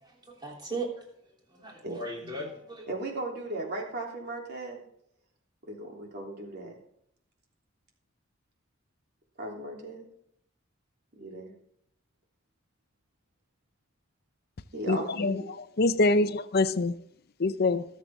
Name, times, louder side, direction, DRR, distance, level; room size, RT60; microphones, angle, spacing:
voice 1, 0.0-0.9 1.5-2.9, right 2 dB, 20° right, 3.2 m, -37 dB
voice 2, 1.8-2.5 2.9-4.8 5.7-6.8 9.4-10.1 11.2-11.5 14.7-15.5 16.1-16.2, right 2 dB, 50° right, 3.2 m, -37 dB
voice 3, 14.9-15.3 15.8-16.9 17.4-17.8, left 3 dB, 50° left, 0.6 m, -24 dB
20.5 x 7.6 x 3.6 m
head